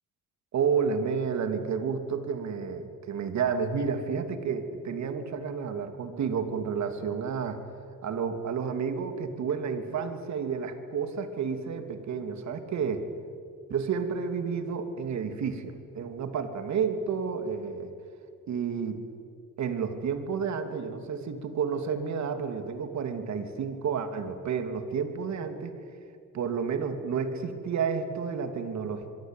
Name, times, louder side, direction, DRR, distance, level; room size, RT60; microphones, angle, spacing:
voice 1, 0.5-7.6 8.0-13.1 13.7-17.9 18.5-19.0 19.6-25.7 26.3-29.1, right 6 dB, 65° right, 8 dB, 3.1 m, -31 dB
25.5 x 23.0 x 9.3 m, 2.4 s
cardioid pair, 90°, 30 cm